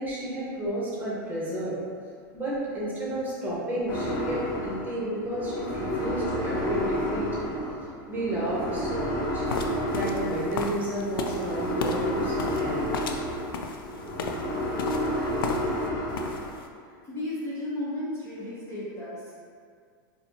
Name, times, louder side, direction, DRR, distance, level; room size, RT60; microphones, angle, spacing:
voice 1, 0.0-1.7 2.3-7.3 8.1-9.4 9.9-12.8, right 1 dB, 15° right, -7 dB, 1.3 m, -31 dB
sound 1, 3.9-16.4, left 1 dB, 65° left, 1.2 m, -31 dB
sound 2, 9.5-15.9 16.1-16.6, left 4 dB, 90° left, 0.4 m, -34 dB
voice 2, 16.9-19.4, left 1 dB, 20° left, -8 dB, 0.8 m, -34 dB
4.1 x 2.7 x 2.8 m, 2.1 s
hypercardioid pair, 120°, 11 cm